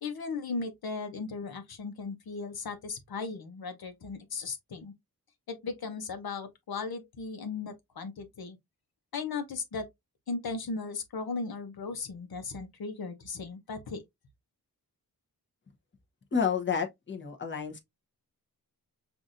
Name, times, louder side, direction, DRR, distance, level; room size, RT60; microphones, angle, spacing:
voice 1, 0.0-4.9 5.5-8.6 9.1-9.9 10.3-14.0, left 4 dB, 75° left, 1.0 m, -37 dB
voice 2, 16.3-17.8, left 6 dB, 30° left, 1.0 m, -30 dB
5.8 x 2.6 x 2.5 m
wide cardioid pair, 100°, 37 cm